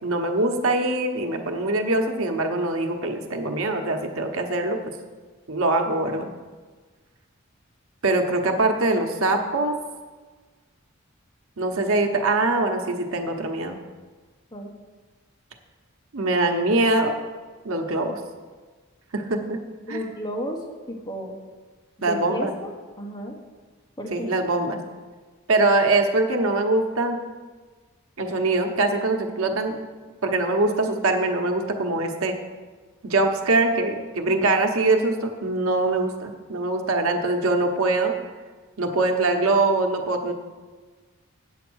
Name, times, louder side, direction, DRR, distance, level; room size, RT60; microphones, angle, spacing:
voice 1, 0.0-4.8 5.5-6.3 8.0-9.7 11.6-13.8 16.1-17.1 17.6-18.2 19.1-19.6 19.9-20.0 22.0-22.5 24.1-24.8 25.5-27.2 28.2-29.8 30.2-32.3 33.0-38.1 38.8-40.3, right 2 dB, 85° right, 4 dB, 1.0 m, -23 dB
voice 2, 19.9-20.6 20.9-21.4 22.1-23.4 24.0-24.3, equal, 20° left, 0 dB, 1.1 m, -33 dB
8.4 x 8.2 x 6.2 m, 1.4 s
head